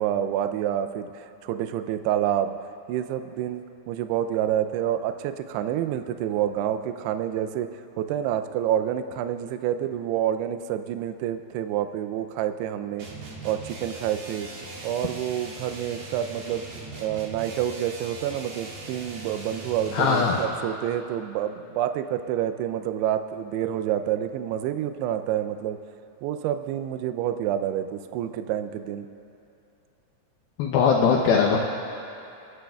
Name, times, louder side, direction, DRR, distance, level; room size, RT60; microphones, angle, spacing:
voice 1, 0.0-2.5 2.9-13.1 13.4-14.5 14.8-16.6 17.0-25.8 26.2-29.1, right 10 dB, 80° right, 9 dB, 2.5 m, -28 dB
sound 1, 13.0-20.6, right 2 dB, 60° right, 1.9 m, -40 dB
voice 2, 19.9-20.4 30.6-31.6, left 6 dB, 75° left, -1 dB, 2.4 m, -20 dB
28.0 x 11.5 x 2.3 m, 2.7 s
omnidirectional pair, 4.9 m